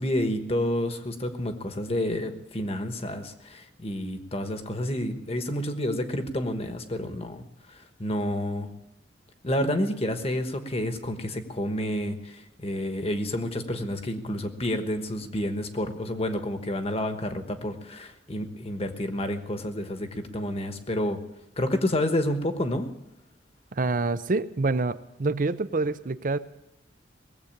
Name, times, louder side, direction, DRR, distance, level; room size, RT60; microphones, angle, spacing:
voice 1, 0.0-8.7 9.4-21.2 21.6-22.9, left 1 dB, 35° left, 7 dB, 1.2 m, -29 dB
voice 2, 23.7-26.4, right 3 dB, 45° right, 14 dB, 0.6 m, -26 dB
19.5 x 8.0 x 8.7 m, 0.93 s
head